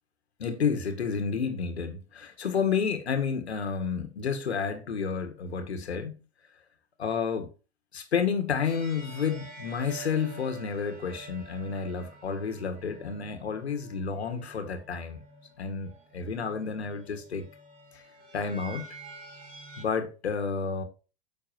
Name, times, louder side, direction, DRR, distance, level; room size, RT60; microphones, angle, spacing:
voice 1, 0.4-6.2 7.0-7.5 7.9-15.2 15.6-17.5 17.9-18.0 18.3-18.9 19.8-20.8, left 6 dB, 85° left, 1.8 m, -30 dB
sound 1, 8.6-19.8, right 4 dB, 25° right, 4.5 m, -48 dB
9.3 x 6.6 x 2.9 m
hypercardioid pair, 100°, 32 cm